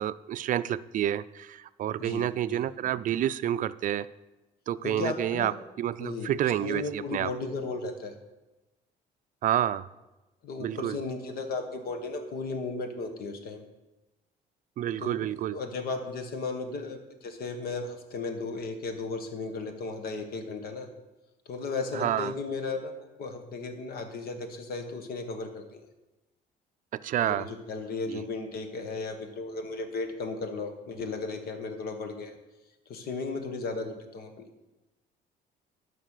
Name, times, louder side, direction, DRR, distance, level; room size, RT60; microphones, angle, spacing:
voice 1, 0.0-4.1 4.7-5.5 5.8-7.3 9.4-9.9 10.6-11.0 14.8-15.6 21.9-22.3 26.9-27.5 28.1-28.2, right 11 dB, 50° right, 16 dB, 0.4 m, -29 dB
voice 2, 2.0-2.6 4.8-5.5 6.0-6.3 6.6-8.1 10.4-13.6 15.0-20.9 21.4-25.8 27.2-32.3 32.9-34.3, left 3 dB, 65° left, 6 dB, 1.6 m, -35 dB
11.0 x 5.4 x 6.6 m, 1.0 s
cardioid pair, 110°, 17 cm